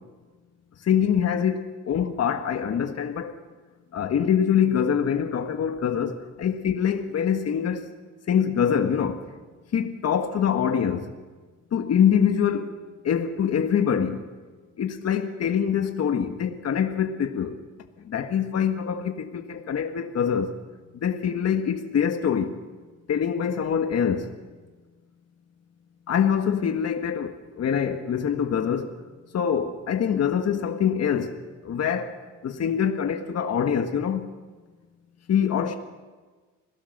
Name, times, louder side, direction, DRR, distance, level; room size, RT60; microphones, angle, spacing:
voice 1, 0.8-3.3 3.9-7.9 8.3-9.2 9.7-11.1 11.7-14.2 14.8-17.6 18.0-20.5 20.9-22.6 23.1-24.3 26.1-29.0 29.3-31.4 31.6-32.1 32.4-34.2 35.3-35.8, left 8 dB, 55° left, 1.6 m, -24 dB
27.5 x 17.5 x 6.6 m
cardioid pair, 90°, 30 cm